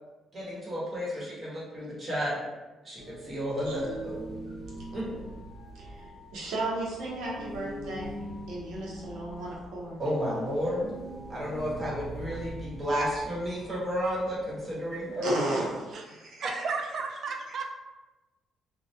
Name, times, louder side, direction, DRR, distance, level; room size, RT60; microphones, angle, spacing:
voice 1, 0.3-2.3 2.8-4.1 4.9-5.1 10.0-10.9 11.3-15.3, equal, 35° right, -7 dB, 1.0 m, -32 dB
sound 1, 3.0-15.8, right 1 dB, 60° left, 0.7 m, -43 dB
voice 2, 6.3-8.2 8.5-10.0 15.2-16.5, right 2 dB, 90° right, -4 dB, 0.7 m, -34 dB
voice 3, 16.4-17.7, right 4 dB, 60° right, 4 dB, 0.3 m, -33 dB
2.2 x 2.1 x 2.7 m, 1.2 s
cardioid pair, 90°, 0 cm